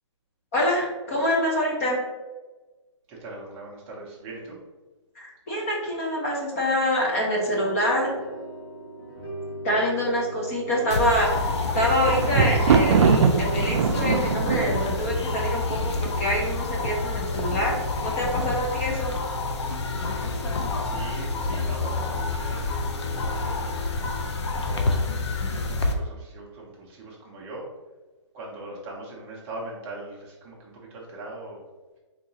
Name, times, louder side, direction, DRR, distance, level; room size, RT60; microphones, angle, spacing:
voice 1, 0.5-2.0 5.2-8.2 9.6-19.1, equal, 30° left, -2 dB, 0.7 m, -26 dB
voice 2, 3.1-4.6 20.6-23.7 24.6-27.7 28.3-31.6, right 2 dB, 15° right, -4 dB, 0.5 m, -41 dB
sound 1, 7.3-13.6, right 1 dB, 45° left, 1.2 m, -40 dB
sound 2, 10.9-25.9, left 3 dB, 65° left, 0.5 m, -28 dB
Thunder, 11.3-16.5 17.2-17.7 18.0-18.1, right 6 dB, 70° right, 0.4 m, -23 dB
3.8 x 2.8 x 2.7 m, 1.2 s
hypercardioid pair, 165°, 16 cm